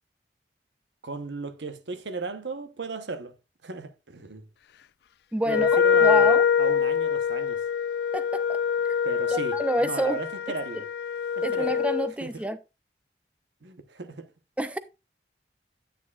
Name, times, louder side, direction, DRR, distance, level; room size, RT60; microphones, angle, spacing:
voice 1, 1.0-3.3 3.6-4.5 5.4-7.6 9.0-10.9 11.4-11.8 12.2-12.4 13.6-14.3, right 3 dB, 90° right, 1.0 m, -36 dB
voice 2, 5.3-6.4 8.1-8.6 8.9-9.0 9.3-10.2 11.4-12.6 14.6-14.8, right 1 dB, 5° right, 0.4 m, -28 dB
Wind instrument woodwind instrument, 5.5-12.1, left 7 dB, 65° left, 0.3 m, -24 dB
9.7 x 9.0 x 2.4 m
head